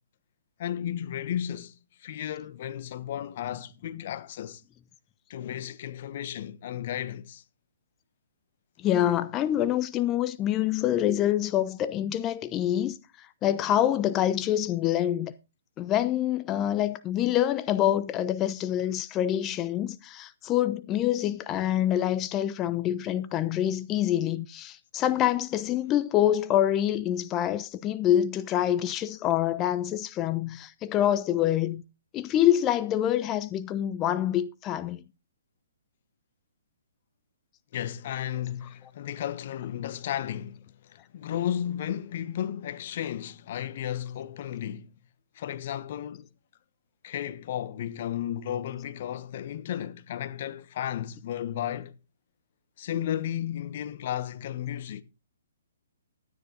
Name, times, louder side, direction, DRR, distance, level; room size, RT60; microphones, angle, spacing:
voice 1, 0.6-4.6 5.3-7.4 37.7-44.9 45.3-46.3 47.0-51.9 52.8-55.0, left 10 dB, 50° left, 1.1 m, -34 dB
voice 2, 8.8-15.3 15.8-31.8 32.1-35.0, left 11 dB, 25° left, 0.8 m, -26 dB
12.5 x 9.5 x 3.8 m
hypercardioid pair, 135°, 0 cm